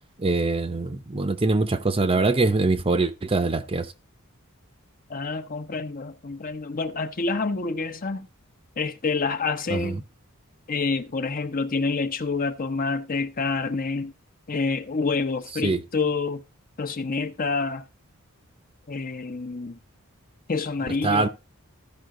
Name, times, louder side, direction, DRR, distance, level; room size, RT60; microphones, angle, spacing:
voice 1, 0.2-3.9 9.7-10.0 15.6-15.8 21.0-21.3, right 3 dB, 25° right, 0.7 m, -23 dB
voice 2, 5.1-8.3 8.8-10.0 10.7-14.1 14.5-16.4 16.8-17.9 18.9-19.8 20.5-21.3, left 4 dB, 40° left, 0.8 m, -27 dB
14.5 x 5.6 x 3.7 m
head